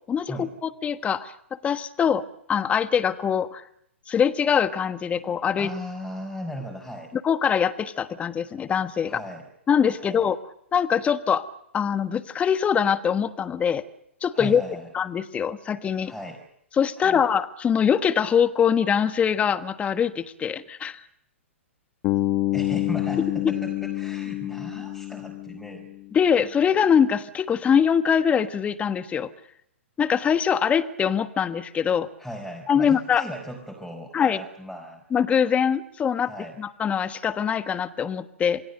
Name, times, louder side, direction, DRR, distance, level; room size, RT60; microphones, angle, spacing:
voice 1, 0.1-1.3 1.6-3.6 4.1-5.7 7.2-9.2 9.7-10.4 10.7-11.4 11.7-13.8 14.2-14.6 14.9-16.1 16.8-21.0 26.1-29.3 30.0-32.1 32.7-33.2 34.1-34.4 35.1-36.3 36.6-38.6, left 7 dB, 20° left, 11 dB, 1.4 m, -23 dB
voice 2, 5.6-7.1 9.0-9.5 10.0-10.3 14.3-14.9 16.0-16.4 17.0-17.3 22.5-25.9 32.2-35.0 36.2-36.6, equal, ahead, 1 dB, 4.9 m, -37 dB
Bass guitar, 22.0-26.1, left 17 dB, 35° left, 1.5 m, -28 dB
27.5 x 22.5 x 6.7 m, 0.73 s
hypercardioid pair, 120°, 7 cm